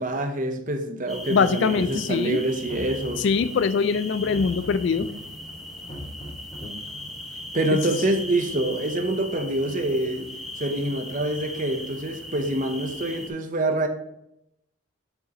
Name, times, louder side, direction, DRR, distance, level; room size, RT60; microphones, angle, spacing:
voice 1, 0.0-3.3 7.5-10.3 10.6-13.9, right 1 dB, 40° right, 7 dB, 0.7 m, -26 dB
sound 1, 1.1-13.3, left 1 dB, ahead, 0.9 m, -39 dB
voice 2, 1.3-2.4 3.2-5.1, left 5 dB, 55° left, 14 dB, 0.3 m, -22 dB
sound 2, 1.7-2.2 2.5-3.5 4.1-5.1 5.7-6.7, equal, 25° left, 2.2 m, -39 dB
6.9 x 6.3 x 2.9 m, 0.80 s
head